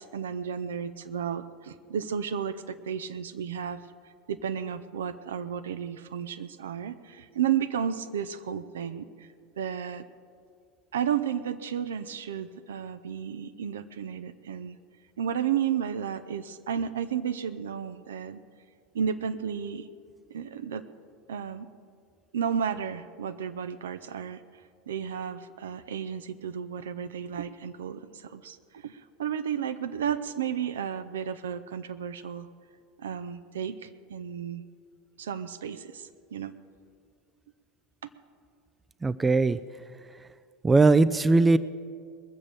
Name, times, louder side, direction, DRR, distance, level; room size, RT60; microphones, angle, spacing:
voice 1, 0.0-3.8 4.3-9.3 9.6-10.0 10.9-14.8 15.2-18.4 18.9-19.9 20.3-20.9 21.3-21.7 22.3-24.4 24.9-32.5 33.0-34.6 35.2-36.5, right 8 dB, 70° right, 11 dB, 0.6 m, -33 dB
voice 2, 39.0-39.6 40.6-41.6, right 3 dB, 15° right, 16 dB, 0.4 m, -20 dB
21.0 x 7.3 x 6.7 m, 2.1 s
figure-of-eight pair, 75°, 0 cm